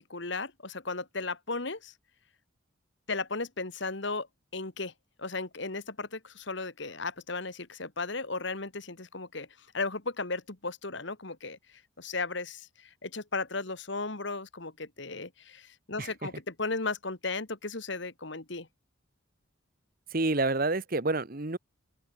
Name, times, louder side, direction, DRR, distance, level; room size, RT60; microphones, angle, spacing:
voice 1, 0.0-1.9 3.1-4.3 4.5-4.9 5.2-9.5 9.7-11.6 12.0-18.7, left 3 dB, 60° left, 1.9 m, -35 dB
voice 2, 16.0-16.3 20.1-21.6, right 2 dB, 45° right, 1.2 m, -28 dB
open air
head